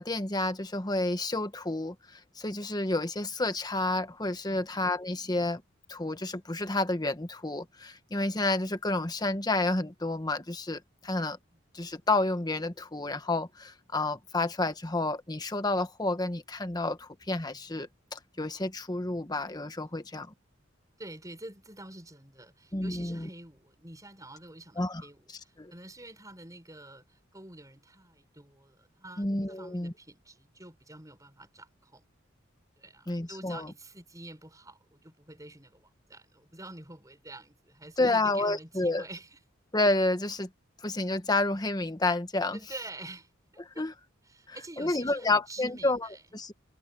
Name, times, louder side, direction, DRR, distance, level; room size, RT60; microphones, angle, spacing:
voice 1, 0.0-5.6 5.9-11.4 11.7-20.3 22.7-23.3 24.8-25.0 25.6-25.7 29.2-29.9 33.1-33.7 38.0-39.0 39.7-40.5 40.8-42.6 43.8-43.9 44.5-46.5, left 2 dB, 20° left, 1.3 m, -30 dB
voice 2, 21.0-32.0 32.8-39.4 42.5-43.8 44.2-46.2, right 2 dB, 15° right, 5.2 m, -47 dB
head